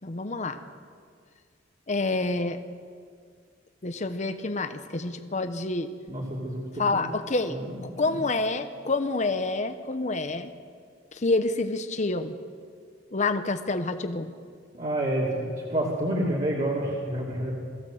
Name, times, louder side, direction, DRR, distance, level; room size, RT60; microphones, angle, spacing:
voice 1, 0.0-0.6 1.9-2.6 3.8-5.9 6.8-10.5 11.1-12.3 13.1-14.3, left 3 dB, 40° left, 9 dB, 0.9 m, -28 dB
voice 2, 6.1-7.0 7.5-8.2 14.7-17.5, right 1 dB, 40° right, -5 dB, 3.2 m, -29 dB
21.0 x 15.5 x 7.9 m, 2.1 s
head